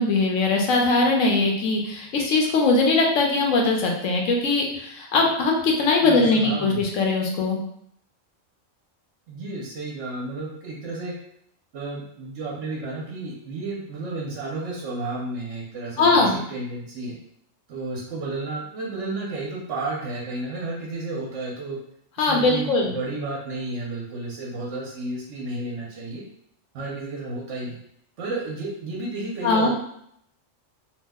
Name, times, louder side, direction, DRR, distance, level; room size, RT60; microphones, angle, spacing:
voice 1, 0.0-7.6 16.0-16.3 22.2-22.9 29.4-29.7, left 3 dB, 80° left, 1 dB, 1.0 m, -21 dB
voice 2, 6.0-6.8 9.3-11.1 11.7-17.2 17.7-21.8 22.2-26.2 26.7-27.8 28.2-29.7, right 2 dB, 70° right, -3 dB, 0.9 m, -32 dB
2.6 x 2.0 x 3.4 m, 0.71 s
omnidirectional pair, 1.3 m